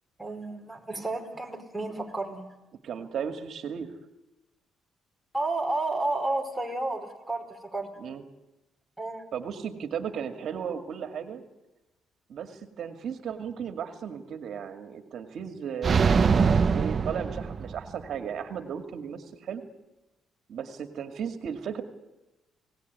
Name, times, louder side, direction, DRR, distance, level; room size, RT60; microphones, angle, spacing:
voice 1, 0.2-2.5 5.3-7.9 9.0-9.3, right 2 dB, 5° right, 1 dB, 5.3 m, -31 dB
voice 2, 2.8-3.9 8.0-8.2 9.3-11.4 12.3-19.6 20.5-21.8, right 7 dB, 65° right, 6 dB, 2.2 m, -35 dB
sound 1, 15.8-18.0, right 5 dB, 45° right, 0.9 m, -23 dB
26.0 x 19.0 x 9.5 m, 1.0 s
cardioid pair, 90°, 0 cm